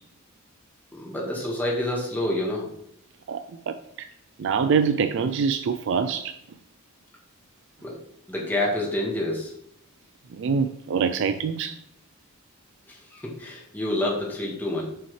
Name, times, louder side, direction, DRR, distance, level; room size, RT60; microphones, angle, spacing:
voice 1, 0.9-2.7 7.8-8.0 8.3-9.5 12.9-14.9, left 1 dB, 10° left, -3 dB, 1.6 m, -28 dB
voice 2, 3.3-4.1 4.4-6.3 10.3-11.8, right 6 dB, 60° right, 9 dB, 0.4 m, -25 dB
7.1 x 5.6 x 3.2 m, 0.73 s
head